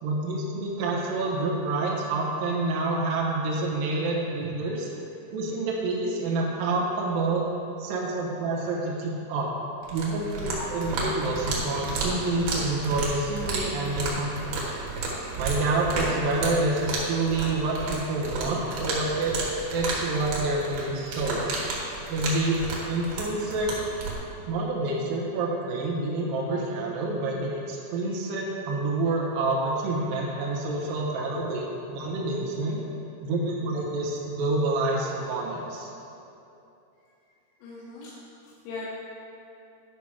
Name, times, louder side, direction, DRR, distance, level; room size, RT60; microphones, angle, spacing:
voice 1, 0.0-4.9 5.3-7.4 7.8-9.5 9.9-14.6 15.4-19.4 19.7-21.5 22.1-22.6 22.9-23.7 24.5-32.8 33.2-35.9, right 2 dB, 80° right, -4 dB, 2.0 m, -28 dB
sound 1, 9.8-24.1, right 3 dB, 60° right, 2.8 m, -32 dB
voice 2, 37.6-38.1 38.4-38.9, left 3 dB, 80° left, -8 dB, 3.9 m, -39 dB
11.5 x 5.9 x 4.8 m, 2.8 s
omnidirectional pair, 5.9 m